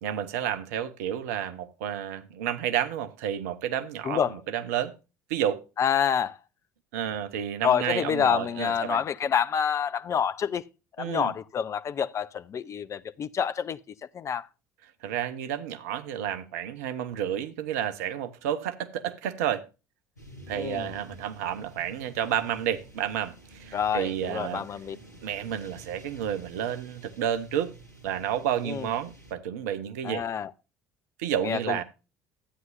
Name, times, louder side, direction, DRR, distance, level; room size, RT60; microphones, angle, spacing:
voice 1, 0.0-4.9 5.3-5.6 6.9-9.0 11.0-11.3 15.0-19.6 20.5-24.6 25.2-27.7 28.0-30.2 31.2-31.8, right 10 dB, 65° right, 0.9 m, -30 dB
voice 2, 4.0-4.4 5.8-6.4 7.6-10.6 11.0-13.8 14.1-14.5 20.5-20.9 23.7-25.0 28.6-28.9 30.0-30.5 31.4-31.8, left 8 dB, 35° left, 0.6 m, -27 dB
sound 1, 20.2-29.3, right 1 dB, 85° left, 1.3 m, -49 dB
13.0 x 9.4 x 2.6 m
figure-of-eight pair, 60°, 9 cm